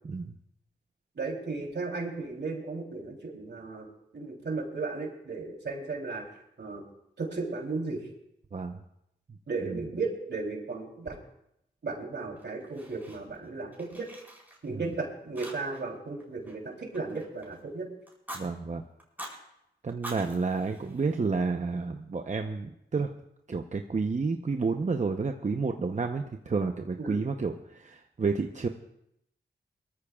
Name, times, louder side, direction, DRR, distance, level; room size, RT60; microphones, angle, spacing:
voice 1, 1.1-3.9 4.1-6.3 6.6-6.8 7.2-8.1 9.5-11.2 11.8-14.1 14.6-17.9 27.0-27.2, right 3 dB, 70° right, 1 dB, 3.2 m, -35 dB
voice 2, 8.5-8.8 9.6-9.9 14.7-15.0 18.3-18.8 19.8-23.1 23.5-28.7, right 4 dB, 40° right, 5 dB, 0.8 m, -30 dB
Fire, 12.4-13.5 13.7-14.9 15.4-15.9 16.2-17.6 18.1-18.4 19.0-19.4 19.9-21.5, right 1 dB, 10° right, 4.5 m, -45 dB
23.0 x 13.5 x 2.4 m, 0.79 s
wide cardioid pair, 70°, 18 cm